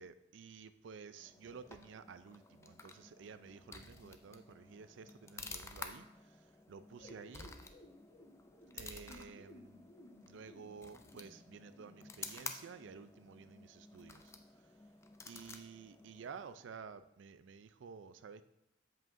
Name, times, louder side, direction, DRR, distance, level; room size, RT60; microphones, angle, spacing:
voice 1, 0.0-6.1 6.7-7.5 8.7-9.8 10.2-14.3 15.3-18.4, right 5 dB, 75° right, 13 dB, 0.4 m, -52 dB
sound 1, 1.2-16.8, left 4 dB, 15° left, 0.3 m, -52 dB
sound 2, 7.0-12.5, left 1 dB, 60° left, 1.2 m, -59 dB
7.8 x 7.5 x 2.6 m, 0.86 s
head